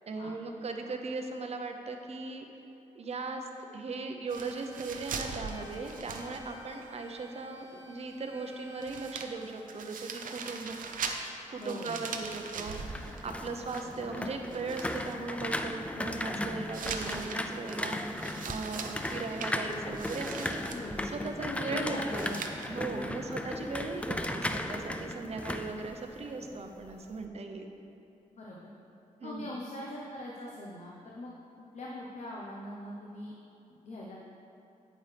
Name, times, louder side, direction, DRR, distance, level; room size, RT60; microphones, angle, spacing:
voice 1, 0.0-2.5 2.9-10.8 11.5-20.6 21.0-22.4 22.7-27.7 29.2-29.5, right 3 dB, 50° right, 4 dB, 0.8 m, -38 dB
sound 1, 4.3-9.3, equal, 25° left, 2.2 m, -53 dB
sound 2, 4.3-6.9 7.1-7.2 8.5-8.6 8.8-14.2 14.5-15.2 16.7-20.8 22.1-22.7, right 5 dB, 85° right, 0.6 m, -41 dB
voice 2, 11.6-12.1 20.6-21.0 21.4-22.4 23.0-23.4 28.3-28.7 29.2-31.3 31.7-33.3 33.8-34.2, left 1 dB, 60° left, -3 dB, 0.9 m, -41 dB
sound 3, 12.6-26.6 26.9-27.3, left 1 dB, 10° left, 0.4 m, -36 dB
9.0 x 8.7 x 3.4 m, 2.8 s
wide cardioid pair, 120°, 14 cm